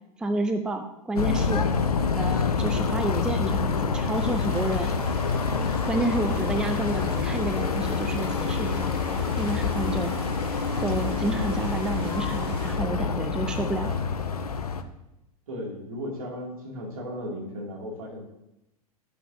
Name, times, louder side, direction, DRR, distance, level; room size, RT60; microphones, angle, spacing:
voice 1, 0.2-1.7 2.1-4.9 5.9-8.9 9.4-10.1 10.8-14.0, right 2 dB, 5° right, 7 dB, 0.5 m, -30 dB
sound 1, 1.2-14.8, left 5 dB, 75° left, 0.7 m, -27 dB
sound 2, 4.1-12.7, right 1 dB, 25° right, 3.1 m, -42 dB
voice 2, 15.5-18.2, equal, 65° right, -1 dB, 2.5 m, -35 dB
10.5 x 8.3 x 2.7 m, 0.87 s
figure-of-eight pair, 95°, 20 cm